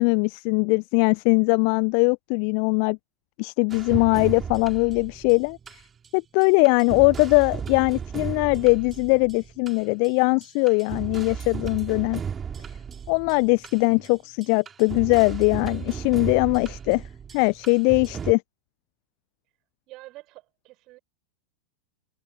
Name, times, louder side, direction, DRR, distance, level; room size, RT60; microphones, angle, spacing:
voice 1, 0.0-3.0 3.4-5.6 6.1-12.2 13.1-17.0 17.3-18.4, left 40 dB or more, 45° left, 1.0 m, -21 dB
sound 1, 3.7-6.1 6.4-10.1 10.4-18.3, right 7 dB, 20° right, 3.3 m, -35 dB
voice 2, 19.9-21.0, right 20 dB, 40° right, 7.6 m, -46 dB
figure-of-eight pair, 90°, 0 cm